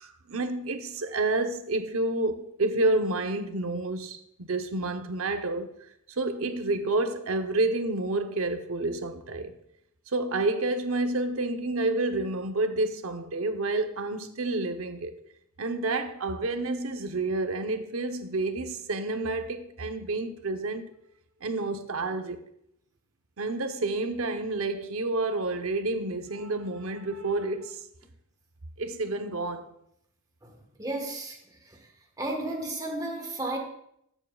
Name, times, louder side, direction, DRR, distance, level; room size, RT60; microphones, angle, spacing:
voice 1, 0.0-5.7 6.1-9.5 10.1-15.1 15.6-20.9 21.4-22.4 23.4-27.8 28.8-29.7, right 2 dB, 80° right, 0.8 m, -29 dB
voice 2, 30.4-31.9 32.2-33.6, right 2 dB, 20° right, 1.3 m, -34 dB
13.0 x 7.3 x 2.3 m
head